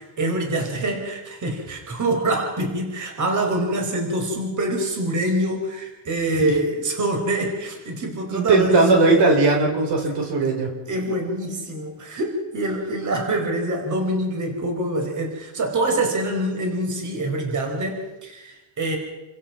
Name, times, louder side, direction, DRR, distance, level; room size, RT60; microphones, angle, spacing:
voice 1, 0.0-9.2 10.9-19.0, right 1 dB, 40° right, 3 dB, 4.8 m, -25 dB
voice 2, 8.3-10.7, right 3 dB, 55° right, 2 dB, 4.8 m, -18 dB
29.0 x 16.0 x 6.0 m, 1.1 s
cardioid pair, 130°, 48 cm